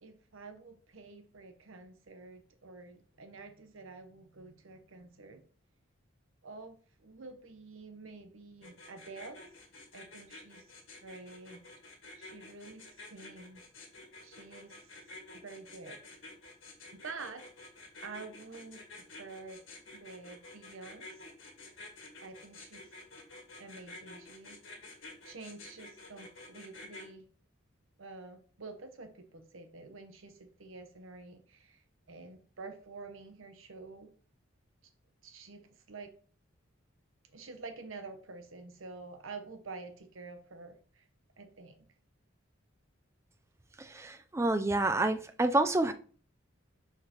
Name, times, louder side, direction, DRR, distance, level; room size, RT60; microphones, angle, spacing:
voice 1, 0.0-5.4 6.4-9.4 9.9-10.7 11.0-11.6 12.1-13.6 14.2-14.9 15.3-16.0 16.9-17.5 18.0-19.6 19.9-21.2 22.2-22.9 23.6-24.9 25.2-27.3 28.0-34.1 35.2-36.1 37.2-41.1 41.4-41.8, right 3 dB, 75° right, 0.9 m, -48 dB
sound 1, 8.6-27.1, left 2 dB, 65° left, 1.6 m, -50 dB
voice 2, 43.8-45.9, right 2 dB, 15° right, 0.4 m, -28 dB
6.5 x 5.7 x 2.9 m
head